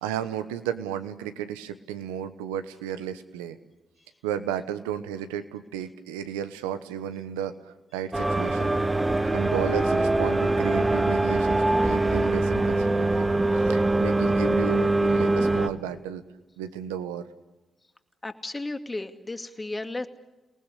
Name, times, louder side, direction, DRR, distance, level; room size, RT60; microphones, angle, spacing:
voice 1, 0.0-3.6 4.2-8.8 9.3-13.3 13.6-16.2 16.6-17.2, right 9 dB, 90° right, 10 dB, 1.1 m, -33 dB
sound 1, 8.1-15.7, right 2 dB, 25° right, 1.9 m, -23 dB
voice 2, 18.2-20.1, left 2 dB, 25° left, 7 dB, 2.4 m, -34 dB
29.5 x 19.0 x 8.5 m, 1.1 s
hypercardioid pair, 40°, 0 cm